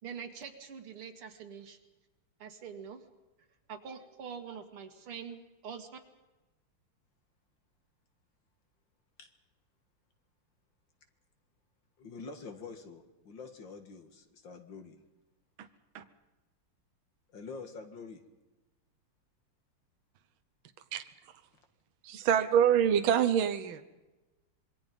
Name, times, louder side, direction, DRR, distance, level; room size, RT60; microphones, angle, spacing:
voice 1, 0.0-1.8 2.4-3.0 3.7-6.0, right 6 dB, 90° right, 6 dB, 2.8 m, -44 dB
voice 2, 12.0-14.9 17.3-18.2 23.0-23.1, left 4 dB, 60° left, 7 dB, 2.5 m, -46 dB
voice 3, 22.0-23.8, right 9 dB, 70° right, 9 dB, 1.8 m, -25 dB
26.5 x 22.5 x 5.4 m, 1.1 s
omnidirectional pair, 2.4 m